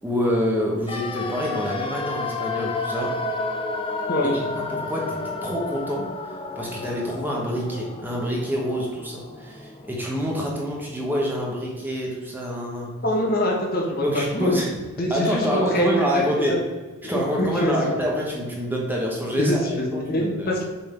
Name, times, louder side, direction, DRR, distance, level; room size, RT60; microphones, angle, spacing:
voice 1, 0.0-3.1 4.7-12.9 14.0-14.7 15.1-16.6 17.0-20.5, equal, 10° right, -3 dB, 1.2 m, -26 dB
sound 1, 0.9-10.8 11.1-11.2, left 3 dB, 25° left, 0.5 m, -31 dB
voice 2, 13.0-14.5 15.0-16.6 17.0-17.9 19.4-20.6, left 1 dB, 40° left, 0 dB, 1.4 m, -24 dB
7.1 x 4.0 x 5.1 m, 1.3 s
head